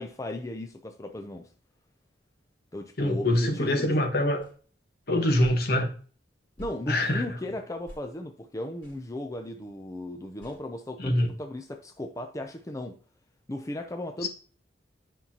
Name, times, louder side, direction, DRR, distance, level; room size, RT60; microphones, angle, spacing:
voice 1, 0.0-1.5 2.7-4.0 6.6-13.0 13.5-14.3, left 1 dB, 20° left, 0.5 m, -36 dB
voice 2, 3.0-4.5 5.1-5.9 6.9-7.3 11.0-11.3 14.2-14.3, left 1 dB, 60° left, 1.2 m, -24 dB
sound 1, 4.4-4.5 5.4-5.7 6.6-6.8 7.9-8.1 8.8-9.0 10.4-10.6, right 1 dB, 75° left, 3.5 m, -45 dB
9.6 x 5.4 x 2.9 m
head